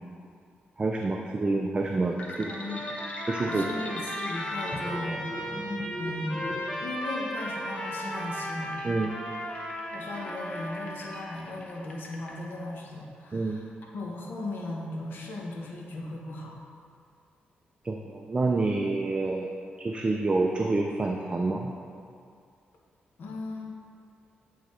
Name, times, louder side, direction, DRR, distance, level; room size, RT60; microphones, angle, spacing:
voice 1, 0.8-2.6 3.3-3.7 8.8-9.1 13.3-13.6 17.8-19.5 19.8-21.7, right 3 dB, 30° right, 1 dB, 0.4 m, -28 dB
sound 1, 2.2-12.4, left 1 dB, 35° left, 0.8 m, -41 dB
voice 2, 2.4-2.8 3.4-5.7 6.0-8.8 9.9-16.5 23.2-23.7, left 2 dB, 75° left, -2 dB, 1.0 m, -37 dB
Trumpet, 2.5-11.3, equal, 20° left, 1.2 m, -36 dB
8.5 x 3.9 x 3.1 m, 2.4 s
cardioid pair, 85°, 4 cm